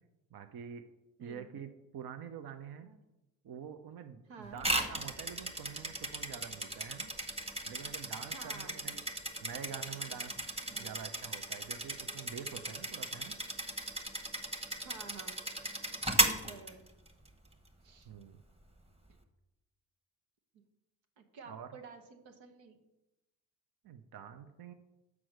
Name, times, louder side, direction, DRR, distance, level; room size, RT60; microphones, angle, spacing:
voice 1, 0.3-0.8 1.2-2.9 3.4-7.1 7.6-9.0 9.4-10.3 10.7-13.3 18.1-18.4 21.5-21.7 23.8-24.7, right 8 dB, 50° right, 8 dB, 0.7 m, -46 dB
voice 2, 4.3-4.6 8.2-8.8 10.7-11.0 14.8-15.4 16.4-16.8 17.8-18.1 20.5-20.6 21.2-22.8, right 5 dB, 80° right, 5 dB, 1.0 m, -51 dB
sound 1, 4.6-17.3, right 1 dB, 15° right, 1.1 m, -36 dB
6.2 x 4.8 x 6.3 m, 0.98 s
hypercardioid pair, 45°, 46 cm